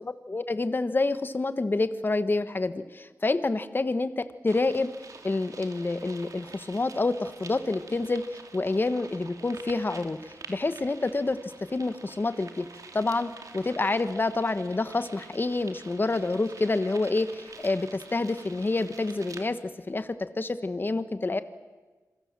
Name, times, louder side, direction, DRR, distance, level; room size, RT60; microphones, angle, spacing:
voice 1, 0.0-4.9 5.2-8.2 8.5-10.2 10.5-12.7 12.9-19.6 19.9-21.4, left 3 dB, 35° left, 11 dB, 1.2 m, -28 dB
sound 1, 4.5-19.5, right 4 dB, 70° right, 2.6 m, -48 dB
27.0 x 23.0 x 7.5 m, 1.3 s
wide cardioid pair, 80°, 6 cm